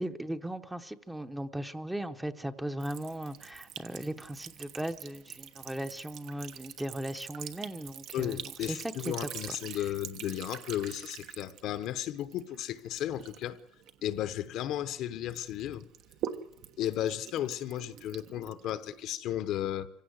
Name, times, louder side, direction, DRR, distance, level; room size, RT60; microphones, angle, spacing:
voice 1, 0.0-8.4 8.7-9.6, right 1 dB, 5° right, 0.8 m, -37 dB
Sink (filling or washing) / Trickle dribble, 2.8-14.9 15.3-19.2, right 10 dB, 65° right, 1.2 m, -45 dB
voice 2, 8.1-13.6 14.0-15.9 16.8-19.9, left 12 dB, 65° left, 1.0 m, -34 dB
25.5 x 16.0 x 8.0 m
cardioid pair, 140°, 0 cm